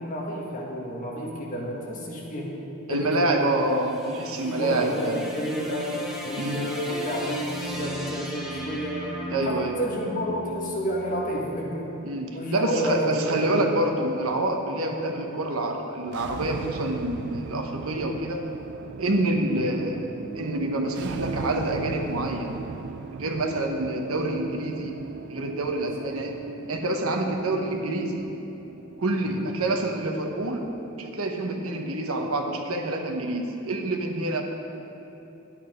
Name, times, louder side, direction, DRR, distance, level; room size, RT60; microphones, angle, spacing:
voice 1, 0.0-2.5 2.9-3.5 4.5-5.9 6.2-9.0 9.4-12.0 12.3-13.7 19.7-19.8 26.0-26.1 29.3-29.5, equal, 40° left, -3 dB, 1.8 m, -30 dB
voice 2, 2.9-5.2 6.4-6.6 9.3-9.8 12.0-18.5 19.0-20.1 20.3-22.5 23.2-24.9 25.3-26.4 26.7-28.3 29.0-30.6 31.0-34.4, right 1 dB, 80° right, 3 dB, 1.1 m, -27 dB
sound 1, 3.4-11.7, equal, ahead, 1.4 m, -37 dB
sound 2, 16.0-31.0, right 5 dB, 55° right, 0.3 m, -39 dB
11.0 x 8.7 x 5.1 m, 2.9 s
head